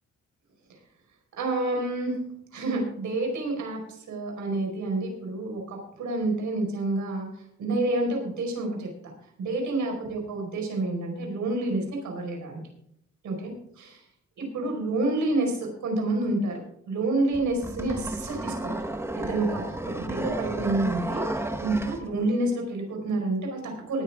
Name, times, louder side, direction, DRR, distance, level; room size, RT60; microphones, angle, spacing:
voice 1, 1.4-2.1 2.5-7.3 7.6-9.1 9.4-12.6 13.2-14.0 14.4-18.8 19.1-24.0, right 2 dB, 80° right, 1 dB, 4.8 m, -29 dB
sound 1, 17.3-22.0, right 1 dB, 10° right, 1.1 m, -32 dB
18.5 x 9.5 x 3.6 m, 0.71 s
wide cardioid pair, 145°, 29 cm